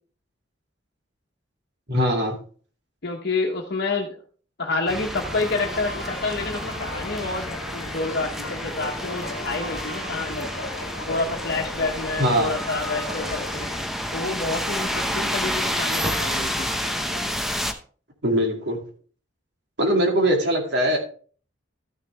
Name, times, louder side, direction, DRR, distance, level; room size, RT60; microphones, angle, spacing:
voice 1, 1.9-2.4 12.2-12.5 18.2-18.8 19.8-21.0, equal, 60° right, 1 dB, 2.4 m, -21 dB
voice 2, 3.0-4.2 4.6-10.5 11.1-13.7 14.1-16.7, left 3 dB, 60° left, 0 dB, 1.1 m, -28 dB
sound 1, 4.7-14.0 14.5-14.6 14.8-17.6, left 1 dB, 40° right, 5.3 m, -41 dB
sound 2, 4.9-17.7, equal, ahead, 0.7 m, -30 dB
sound 3, 5.6-13.8, left 3 dB, 85° left, 1.1 m, -37 dB
13.0 x 6.6 x 3.4 m, 0.43 s
head